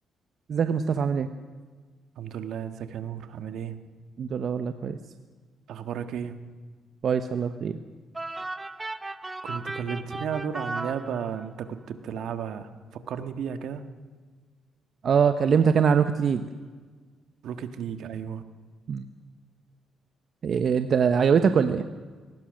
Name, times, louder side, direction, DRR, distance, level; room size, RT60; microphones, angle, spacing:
voice 1, 0.5-1.3 4.2-5.0 7.0-7.8 15.0-16.5 18.9-19.0 20.4-21.9, right 6 dB, 55° right, 9 dB, 1.0 m, -23 dB
voice 2, 2.2-3.7 5.7-6.5 9.4-13.8 17.4-18.4, right 8 dB, 75° right, 9 dB, 1.6 m, -34 dB
sound 1, 8.1-11.7, right 2 dB, 20° right, 0.9 m, -36 dB
22.5 x 19.0 x 6.5 m, 1.4 s
cardioid pair, 90°, 0 cm